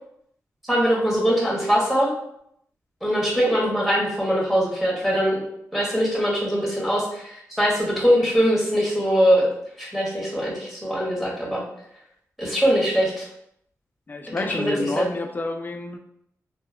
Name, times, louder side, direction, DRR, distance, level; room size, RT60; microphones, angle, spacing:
voice 1, 0.6-2.1 3.0-5.4 5.7-9.5 9.8-11.6 12.4-13.3 14.4-15.1, equal, 5° right, -5 dB, 1.1 m, -22 dB
voice 2, 14.1-16.0, left 3 dB, 30° left, 5 dB, 0.3 m, -29 dB
2.7 x 2.0 x 2.3 m, 0.74 s
cardioid pair, 60°, 6 cm